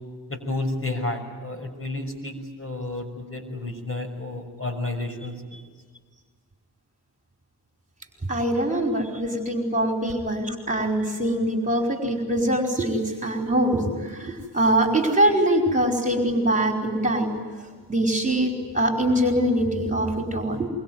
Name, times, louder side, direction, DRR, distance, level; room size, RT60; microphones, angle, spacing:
voice 1, 0.3-5.6, left 2 dB, 25° left, 6 dB, 6.4 m, -31 dB
voice 2, 8.3-17.3 17.9-20.7, right 1 dB, 15° right, 2 dB, 4.8 m, -23 dB
25.0 x 24.0 x 9.5 m, 1.5 s
supercardioid pair, 50°, 48 cm